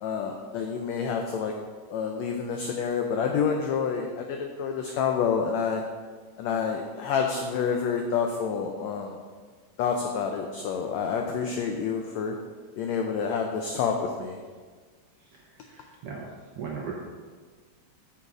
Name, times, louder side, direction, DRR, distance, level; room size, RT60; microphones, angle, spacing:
voice 1, 0.0-1.5 1.9-5.8 6.4-9.2 9.8-12.3 12.8-14.4, left 6 dB, 85° left, 3 dB, 1.5 m, -28 dB
voice 2, 15.7-16.2 16.6-16.9, right 6 dB, 65° right, -3 dB, 1.5 m, -36 dB
7.2 x 6.7 x 4.8 m, 1.5 s
omnidirectional pair, 3.8 m